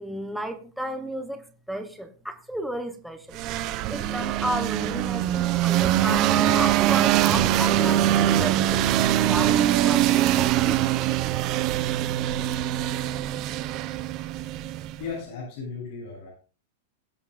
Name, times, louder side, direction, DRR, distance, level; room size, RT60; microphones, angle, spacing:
voice 1, 0.0-3.4 3.9-10.8, right 1 dB, ahead, 0.9 m, -33 dB
sound 1, 3.3-15.1, right 12 dB, 30° right, 0.6 m, -23 dB
voice 2, 15.0-16.3, left 5 dB, 50° left, 7.6 m, -36 dB
21.5 x 7.9 x 2.5 m
supercardioid pair, 175°, 0 cm